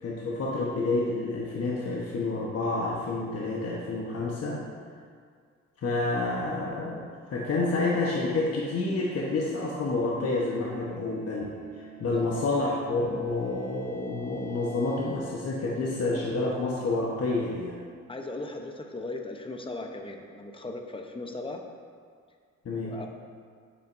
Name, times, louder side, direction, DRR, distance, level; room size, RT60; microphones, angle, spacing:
voice 1, 0.0-4.6 5.8-17.8 22.6-23.0, left 2 dB, 55° left, -4 dB, 1.1 m, -29 dB
sound 1, 8.8-15.1, right 5 dB, 90° left, 2.0 m, -49 dB
voice 2, 18.1-21.6 22.7-23.1, left 2 dB, 15° left, 3 dB, 0.8 m, -38 dB
9.1 x 7.5 x 2.6 m, 2.1 s
cardioid pair, 90°, 30 cm